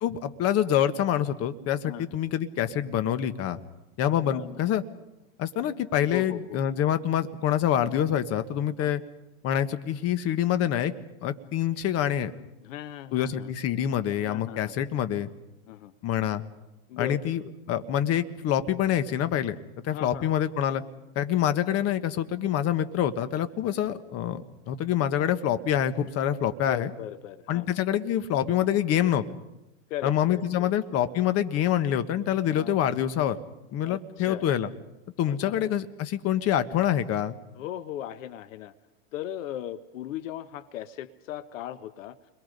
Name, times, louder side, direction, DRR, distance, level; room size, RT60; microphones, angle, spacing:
voice 1, 0.0-3.6 4.0-4.8 5.4-9.0 9.4-10.9 11.2-12.3 13.1-15.3 16.0-16.4 17.0-17.4 17.7-20.8 21.1-26.9 27.5-29.2 30.0-33.4 33.7-34.7 35.2-37.4, left 10 dB, 35° left, 10 dB, 1.4 m, -26 dB
voice 2, 4.2-4.7 6.1-6.6 8.8-8.9 12.6-13.5 14.3-14.7 15.7-15.9 16.9-17.5 19.9-20.3 26.7-27.7 29.9-30.7 32.5-32.8 33.8-34.5 35.2-35.7 37.5-38.7 39.1-42.2, left 11 dB, 70° left, 13 dB, 1.2 m, -38 dB
30.0 x 22.5 x 5.3 m, 0.94 s
hypercardioid pair, 125°, 40 cm